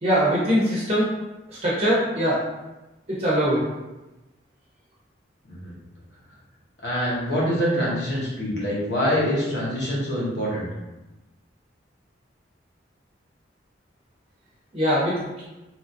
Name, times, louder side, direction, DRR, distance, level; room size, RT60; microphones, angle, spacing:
voice 1, 0.0-1.1 1.5-2.4 3.2-3.6 14.7-15.4, equal, 35° right, -7 dB, 0.6 m, -22 dB
voice 2, 6.8-10.7, equal, 70° left, -6 dB, 1.0 m, -25 dB
2.8 x 2.6 x 2.5 m, 1.0 s
head